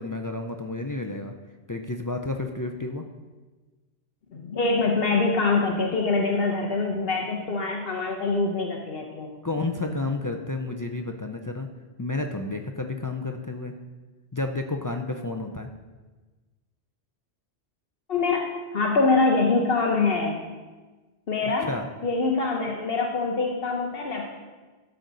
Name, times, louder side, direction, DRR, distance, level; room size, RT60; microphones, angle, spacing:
voice 1, 0.0-1.3 1.7-3.0 9.4-11.7 12.0-13.8 14.3-15.7 21.7-21.9, left 2 dB, 30° left, 4 dB, 0.3 m, -31 dB
voice 2, 4.3-9.3 18.1-20.4 21.3-21.7 22.0-24.3, left 3 dB, 60° left, 0 dB, 1.1 m, -24 dB
12.5 x 6.3 x 4.0 m, 1.3 s
omnidirectional pair, 1.1 m